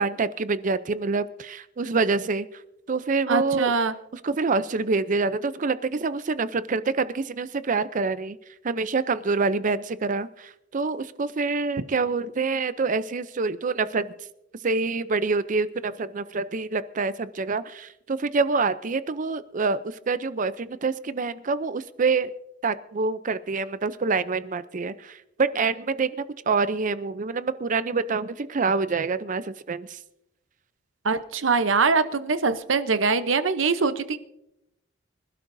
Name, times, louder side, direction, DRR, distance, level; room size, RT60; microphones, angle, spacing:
voice 1, 0.0-2.5 2.9-3.7 4.2-8.4 8.6-14.1 14.6-22.3 22.6-30.0, right 4 dB, 45° right, 14 dB, 0.5 m, -26 dB
voice 2, 3.3-3.9 31.0-34.2, right 4 dB, 85° right, 12 dB, 0.8 m, -23 dB
25.0 x 12.0 x 2.7 m, 0.85 s
head